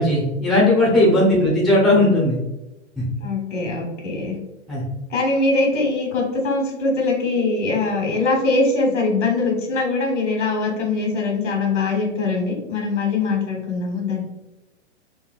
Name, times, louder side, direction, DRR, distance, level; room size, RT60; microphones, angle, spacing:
voice 1, 0.0-2.4 3.0-3.1 4.7-4.8, left 1 dB, ahead, -5 dB, 0.4 m, -17 dB
voice 2, 3.2-4.4 5.1-14.2, left 3 dB, 85° left, 0 dB, 1.3 m, -22 dB
3.3 x 2.1 x 2.4 m, 0.97 s
hypercardioid pair, 130°, 36 cm